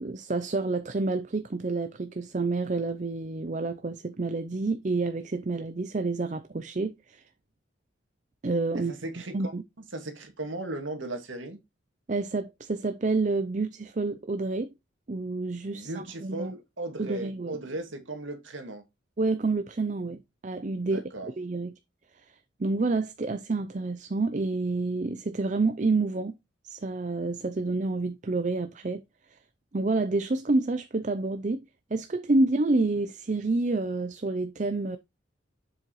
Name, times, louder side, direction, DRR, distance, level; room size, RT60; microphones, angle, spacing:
voice 1, 0.0-7.2 8.4-8.9 9.3-9.6 12.1-14.7 15.1-15.9 16.2-16.5 17.0-17.6 19.2-21.0 21.4-21.7 22.6-26.3 26.6-29.0 29.7-31.6 31.9-35.0, right 3 dB, 40° right, 0.5 m, -28 dB
voice 2, 8.7-9.5 9.9-11.6 15.7-18.8 20.9-21.3, right 2 dB, 85° right, 2.0 m, -37 dB
7.6 x 6.4 x 3.0 m
head